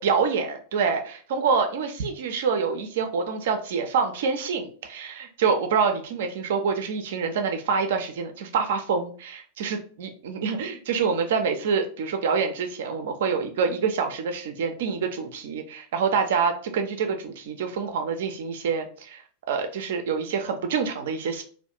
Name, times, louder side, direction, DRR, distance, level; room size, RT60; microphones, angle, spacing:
voice 1, 0.0-19.2 19.5-21.4, right 5 dB, 55° right, 6 dB, 0.4 m, -26 dB
2.3 x 2.1 x 2.8 m, 0.43 s
figure-of-eight pair, 90°, 0 cm